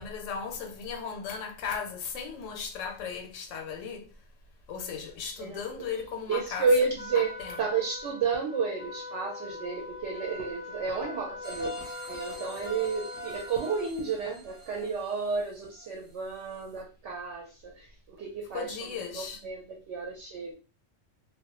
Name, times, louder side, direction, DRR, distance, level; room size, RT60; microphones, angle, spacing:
voice 1, 0.0-4.1 4.7-6.7 7.2-7.6 18.5-19.4, left 6 dB, 80° left, 1.0 m, -36 dB
voice 2, 6.3-7.3 7.6-11.8 12.1-18.7 19.1-20.5, right 4 dB, 70° right, 0.8 m, -31 dB
Trumpet, 7.0-13.9, left 4 dB, 50° left, 0.4 m, -42 dB
sound 1, 11.4-16.2 16.6-16.7, right 1 dB, 40° right, 0.7 m, -44 dB
2.2 x 2.0 x 2.9 m
omnidirectional pair, 1.3 m